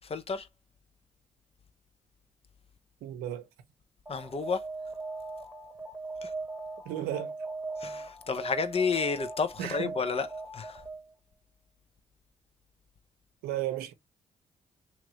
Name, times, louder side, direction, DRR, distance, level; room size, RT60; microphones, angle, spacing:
voice 1, 0.0-0.5 4.1-4.7 6.2-6.3 7.8-10.3 10.5-10.8, left 5 dB, 40° left, 0.7 m, -31 dB
voice 2, 3.0-3.5 6.9-7.3 9.6-10.0 13.4-13.9, right 12 dB, 85° right, 0.5 m, -34 dB
Alarm, 4.1-11.1, right 3 dB, 10° right, 1.1 m, -39 dB
2.9 x 2.6 x 3.0 m
supercardioid pair, 45°, 15 cm